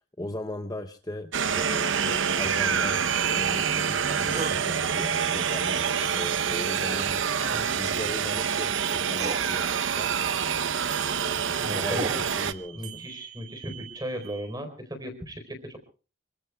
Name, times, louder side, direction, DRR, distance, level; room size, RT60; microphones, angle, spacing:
voice 1, 0.2-3.1 3.3-10.1 11.7-13.0, left 1 dB, 20° left, 6 dB, 0.7 m, -38 dB
sound 1, 1.3-12.5, right 7 dB, 80° right, 0.8 m, -26 dB
sound 2, 3.1-6.7 10.2-14.5, right 11 dB, 60° right, 3.1 m, -43 dB
sound 3, 4.3-4.6 6.9-7.2 8.5-8.6 9.1-9.5 11.4-12.3, right 3 dB, 35° right, 1.4 m, -34 dB
voice 2, 7.4-7.7 11.6-12.3 12.7-15.8, equal, 20° right, 8 dB, 4.2 m, -36 dB
26.5 x 24.0 x 2.3 m, 0.36 s
head